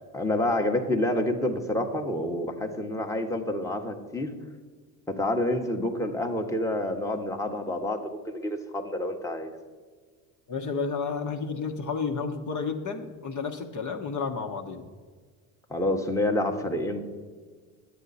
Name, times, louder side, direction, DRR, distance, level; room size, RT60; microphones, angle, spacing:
voice 1, 0.1-4.3 5.1-9.5 15.7-17.0, left 1 dB, 5° left, 2 dB, 1.1 m, -28 dB
voice 2, 10.5-14.9, left 5 dB, 40° left, 3 dB, 1.1 m, -31 dB
11.0 x 8.3 x 4.1 m, 1.5 s
hypercardioid pair, 65°, 45 cm